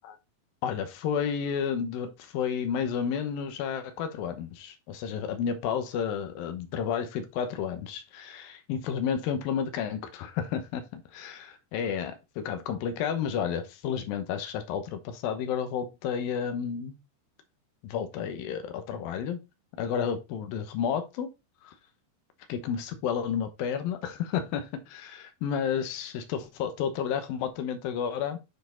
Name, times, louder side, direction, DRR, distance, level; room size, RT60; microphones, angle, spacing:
voice 1, 0.6-17.0 17.8-19.4 19.8-21.3 21.6-21.7 22.5-28.4, left 7 dB, 70° left, 2.4 m, -31 dB
8.5 x 4.7 x 3.8 m
omnidirectional pair, 5.1 m